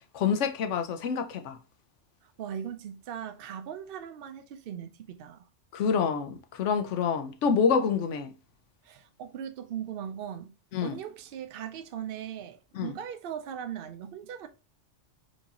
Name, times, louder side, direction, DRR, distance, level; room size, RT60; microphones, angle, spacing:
voice 1, 0.1-1.6 5.7-8.3 10.7-11.0 12.7-12.9, left 6 dB, 80° left, 0.9 m, -27 dB
voice 2, 2.2-5.5 8.8-10.5 10.8-14.5, right 9 dB, 60° right, 0.7 m, -39 dB
4.5 x 2.7 x 2.8 m
omnidirectional pair, 1.2 m